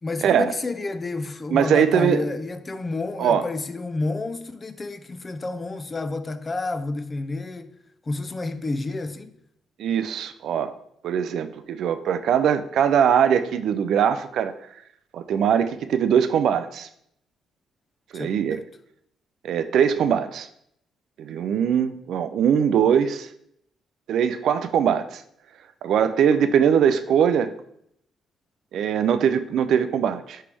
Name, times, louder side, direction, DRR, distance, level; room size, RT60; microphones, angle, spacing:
voice 1, 0.0-7.7 8.1-9.3 18.1-18.6, left 3 dB, 30° left, 0.5 m, -30 dB
voice 2, 1.5-2.3 3.2-3.4 9.8-10.7 11.0-14.5 15.1-16.9 18.1-18.6 19.4-20.5 21.2-23.3 24.1-25.2 25.8-27.5 28.7-30.4, right 8 dB, 70° right, 0.4 m, -21 dB
9.9 x 3.3 x 3.4 m
cardioid pair, 90°, 0 cm